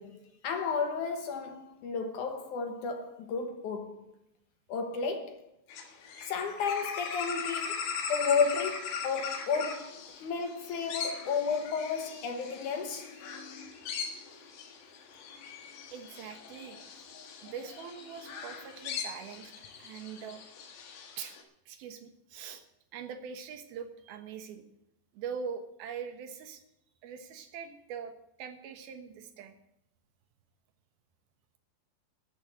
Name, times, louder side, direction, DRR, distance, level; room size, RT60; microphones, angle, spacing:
voice 1, 0.0-4.1 4.7-5.5 6.2-13.1, left 5 dB, 65° left, 2.3 m, -32 dB
sound 1, 5.7-21.4, left 6 dB, 85° left, 3.5 m, -40 dB
voice 2, 15.9-16.8 17.4-19.5 19.8-20.4 21.2-21.4 21.7-22.6 22.9-24.6 25.1-26.6 27.0-28.1 28.4-29.6, right 7 dB, 80° right, 3.2 m, -42 dB
13.0 x 7.2 x 8.8 m
omnidirectional pair, 4.3 m